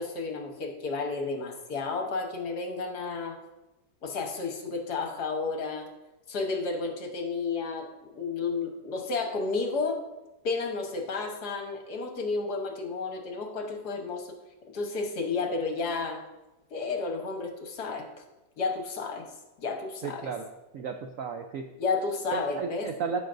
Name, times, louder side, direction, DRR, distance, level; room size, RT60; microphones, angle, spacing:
voice 1, 0.0-3.4 4.0-5.9 6.3-10.0 10.4-14.3 14.7-16.2 16.7-18.2 18.6-19.3 19.6-20.3 21.8-22.9, left 4 dB, 65° left, 3 dB, 1.6 m, -32 dB
voice 2, 20.0-20.4 20.7-21.6 22.3-23.2, right 6 dB, 75° right, 5 dB, 0.7 m, -33 dB
15.5 x 6.0 x 2.6 m, 1.0 s
omnidirectional pair, 1.9 m